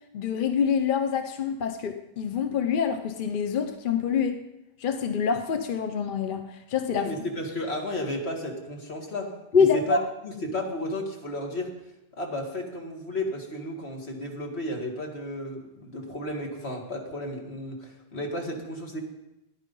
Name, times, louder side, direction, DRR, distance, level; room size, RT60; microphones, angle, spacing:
voice 1, 0.1-4.4 4.8-7.1 9.5-10.0, left 6 dB, 55° left, 7 dB, 0.8 m, -26 dB
voice 2, 7.0-10.0 10.2-11.7 12.2-19.0, left 1 dB, 80° left, 1 dB, 2.2 m, -33 dB
14.0 x 10.0 x 5.4 m, 0.93 s
omnidirectional pair, 1.1 m